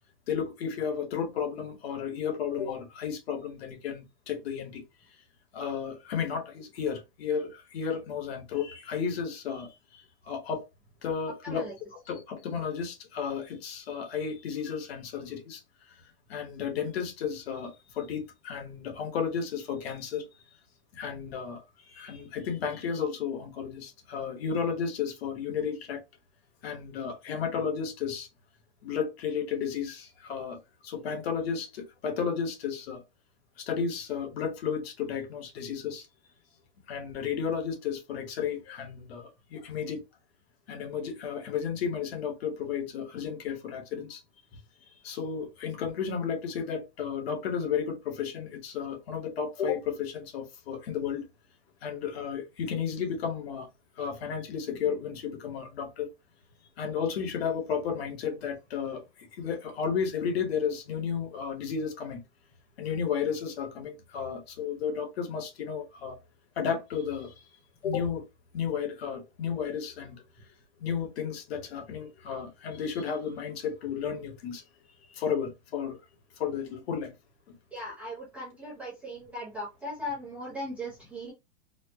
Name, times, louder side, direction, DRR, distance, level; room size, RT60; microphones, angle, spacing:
voice 1, 0.3-4.8 5.5-10.6 11.0-16.0 16.3-20.3 20.9-26.0 26.6-28.3 28.8-33.0 33.6-36.1 36.9-40.0 40.7-44.2 45.0-51.3 51.8-53.7 54.0-56.1 56.8-62.2 62.8-66.2 66.6-67.4 67.8-68.2 68.5-70.2 70.8-74.6 75.1-76.0 76.4-77.1 77.5-77.6, left 7 dB, 55° left, 1.1 m, -33 dB
voice 2, 11.4-11.7 77.7-81.3, equal, 5° right, 0.5 m, -38 dB
4.3 x 2.1 x 2.8 m
supercardioid pair, 170°, 36 cm